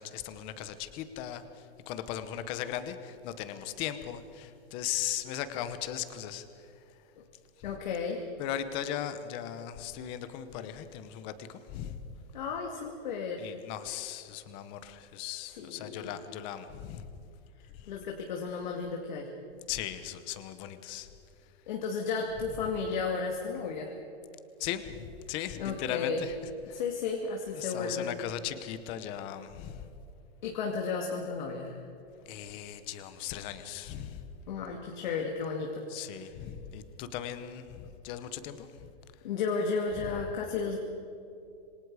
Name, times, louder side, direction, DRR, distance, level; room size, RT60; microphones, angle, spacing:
voice 1, 0.0-6.7 7.6-7.7 8.4-12.0 13.4-17.1 17.7-17.9 19.7-21.1 24.6-26.3 26.7-26.8 27.5-29.9 32.3-34.2 35.9-38.9, left 11 dB, 15° left, 11 dB, 0.8 m, -38 dB
voice 2, 7.6-8.2 12.3-13.5 15.5-16.1 17.9-19.3 21.7-24.0 25.6-26.2 26.7-28.1 30.4-31.8 34.5-35.9 39.2-40.8, left 5 dB, 45° left, 1 dB, 2.4 m, -33 dB
27.0 x 24.5 x 4.9 m, 2.8 s
hypercardioid pair, 175°, 31 cm